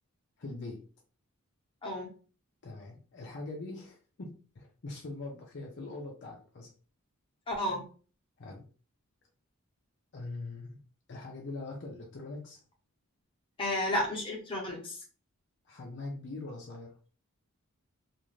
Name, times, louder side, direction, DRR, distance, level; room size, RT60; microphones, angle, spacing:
voice 1, 0.4-0.8 2.6-6.7 8.4-8.6 10.1-10.8 11.1-12.6 15.7-17.0, left 2 dB, 50° left, 0 dB, 0.5 m, -42 dB
voice 2, 7.5-7.8 13.6-15.0, left 1 dB, 25° left, -2 dB, 0.9 m, -32 dB
2.5 x 2.5 x 3.1 m, 0.38 s
head